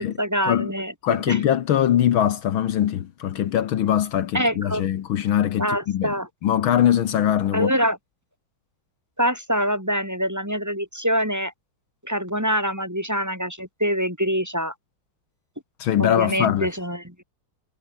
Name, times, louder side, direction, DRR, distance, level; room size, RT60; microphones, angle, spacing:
voice 1, 0.0-0.9 1.3-1.4 4.3-4.9 5.6-6.3 7.5-8.0 9.2-11.5 12.0-14.7 16.0-17.2, equal, 5° right, 7.0 m, -25 dB
voice 2, 1.0-6.1 6.4-7.7 15.8-16.7, left 10 dB, 75° left, 1.9 m, -22 dB
omnidirectional pair, 2.3 m